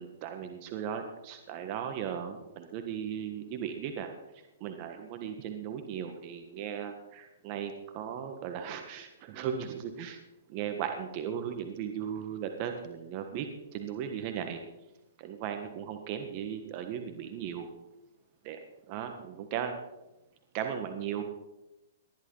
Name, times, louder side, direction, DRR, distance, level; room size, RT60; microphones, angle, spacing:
voice 1, 0.0-10.2 10.5-14.6 15.2-17.7 18.4-18.6 18.9-19.7 20.5-21.2, right 8 dB, 40° right, 6 dB, 1.5 m, -37 dB
19.5 x 11.5 x 4.0 m, 0.96 s
hypercardioid pair, 130°, 0 cm